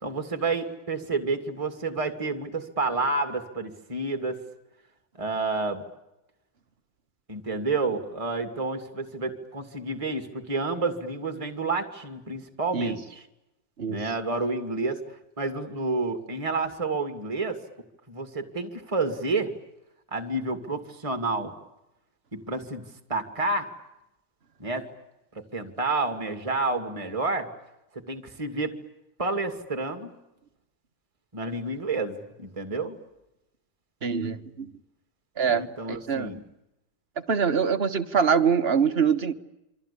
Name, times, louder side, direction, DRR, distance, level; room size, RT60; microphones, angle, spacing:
voice 1, 0.0-4.4 5.2-5.8 7.3-13.2 13.9-17.6 18.1-19.5 20.1-21.5 22.3-22.8 23.1-23.7 24.6-24.9 25.3-27.5 27.9-28.7 29.2-30.1 31.3-33.0 35.5-36.4, right 3 dB, 15° right, 7 dB, 2.4 m, -29 dB
voice 2, 34.0-34.7 35.4-35.6 35.9-36.3 37.3-39.3, right 6 dB, 35° right, 8 dB, 1.4 m, -24 dB
28.5 x 24.5 x 8.6 m, 0.92 s
omnidirectional pair, 2.0 m